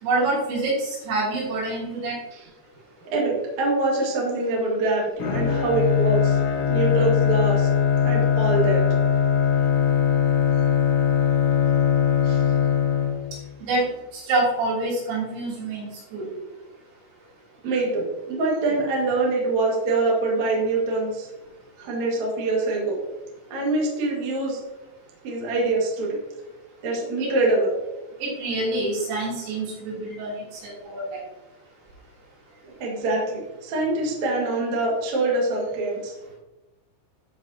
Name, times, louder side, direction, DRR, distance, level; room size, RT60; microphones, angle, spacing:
voice 1, 0.0-2.2 13.6-13.9 14.1-16.3 27.2-27.3 28.2-30.3 30.6-31.2, right 2 dB, 85° right, -7 dB, 5.9 m, -26 dB
voice 2, 3.0-6.4 6.7-7.7 8.0-8.8 12.2-12.4 17.6-21.3 21.8-23.0 23.5-24.6 25.2-26.2 26.8-27.7 32.6-36.1, right 2 dB, 50° right, -3 dB, 2.3 m, -24 dB
Bowed string instrument, 5.2-13.5, left 8 dB, 75° left, 3.9 m, -21 dB
12.5 x 5.3 x 2.9 m, 1.0 s
omnidirectional pair, 6.0 m